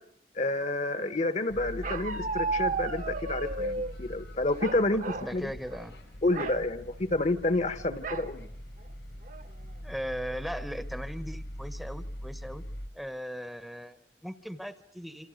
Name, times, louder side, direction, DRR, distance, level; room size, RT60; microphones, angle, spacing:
voice 1, 0.3-5.0 5.3-5.5 6.2-8.5, left 2 dB, 40° left, 12 dB, 1.1 m, -29 dB
sound 1, 1.5-12.9, equal, 85° left, 5.5 m, -42 dB
Bark, 1.8-3.9 4.6-5.3 5.7-5.9 6.3-6.6 8.0-8.3 8.9-9.0 9.3-9.7, right 3 dB, 45° right, 1.1 m, -33 dB
voice 2, 5.2-6.0 9.8-12.6 12.9-15.3, equal, ahead, 11 dB, 0.9 m, -38 dB
27.5 x 27.0 x 6.4 m, 0.72 s
head